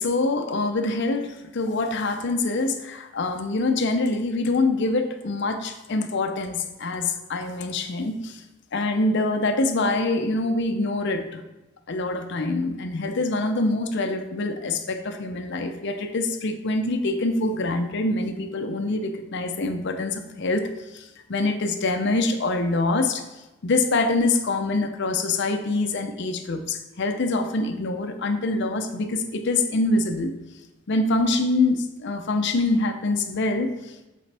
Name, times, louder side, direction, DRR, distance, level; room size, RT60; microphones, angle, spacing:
voice 1, 0.0-8.4 8.7-11.4 11.9-20.7 20.9-23.2 23.6-30.3 30.9-33.7, left 2 dB, 60° left, 6 dB, 0.6 m, -25 dB
7.5 x 4.4 x 3.4 m, 1.0 s
head